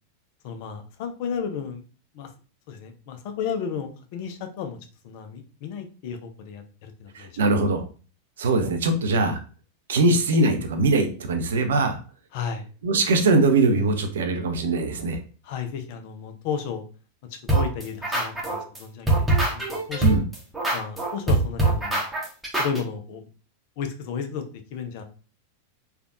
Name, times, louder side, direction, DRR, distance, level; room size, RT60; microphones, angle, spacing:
voice 1, 0.4-1.8 2.1-2.3 2.7-4.8 5.0-7.4 12.3-12.7 15.4-16.8 17.3-20.2 20.7-22.0 22.6-23.3 23.8-24.4 24.7-25.0, left 7 dB, 50° left, 7 dB, 0.5 m, -33 dB
voice 2, 7.1-7.8 8.4-9.4 9.9-12.0 12.8-15.2 20.0-20.2, right 3 dB, 60° right, 6 dB, 0.5 m, -21 dB
sound 1, 17.5-18.8 19.1-22.8, right 2 dB, 5° right, 0.9 m, -23 dB
3.3 x 2.3 x 2.5 m, 0.37 s
figure-of-eight pair, 90°, 0 cm